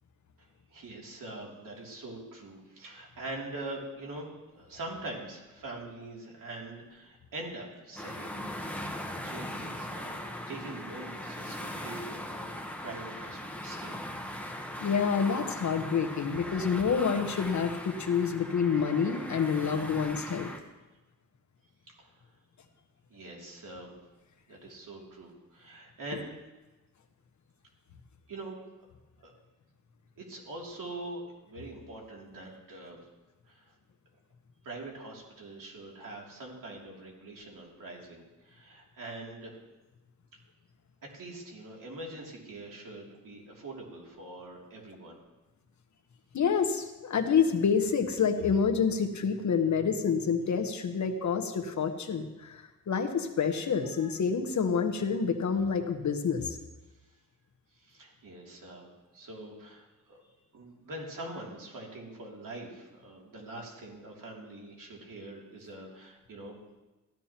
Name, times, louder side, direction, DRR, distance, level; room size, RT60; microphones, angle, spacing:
voice 1, 0.4-8.8 9.1-12.5 12.8-14.0 21.9-22.1 23.1-24.0 24.5-26.4 28.3-28.6 29.2-29.3 30.2-33.0 33.5-33.7 34.6-39.6 41.0-45.2 57.7-66.5, right 2 dB, 70° right, -2 dB, 2.9 m, -44 dB
sound 1, 8.0-20.6, equal, 5° left, 1.1 m, -39 dB
voice 2, 14.8-20.5 46.3-56.6, left 6 dB, 60° left, 5 dB, 1.1 m, -28 dB
15.5 x 12.5 x 3.0 m, 1.1 s
wide cardioid pair, 110°, 33 cm